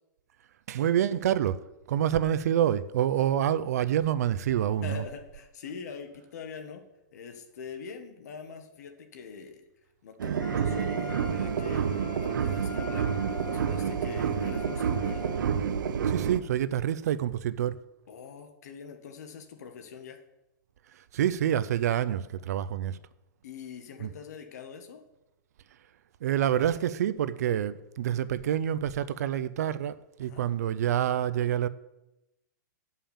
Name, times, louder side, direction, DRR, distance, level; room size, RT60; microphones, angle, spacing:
voice 1, 0.7-1.6 1.9-5.0 16.1-17.8 21.1-23.0 24.0-24.1 26.2-31.7, right 10 dB, 55° right, 0.4 m, -27 dB
voice 2, 4.8-6.8 7.1-9.6 10.0-15.3 18.1-20.2 23.4-25.0 30.2-30.5, left 6 dB, 55° left, 1.3 m, -43 dB
sound 1, 10.2-16.4, right 7 dB, 85° right, 0.8 m, -29 dB
Wind instrument woodwind instrument, 10.4-15.6, left 6 dB, 15° left, 0.6 m, -44 dB
8.6 x 5.6 x 7.2 m
hypercardioid pair, 175°, 10 cm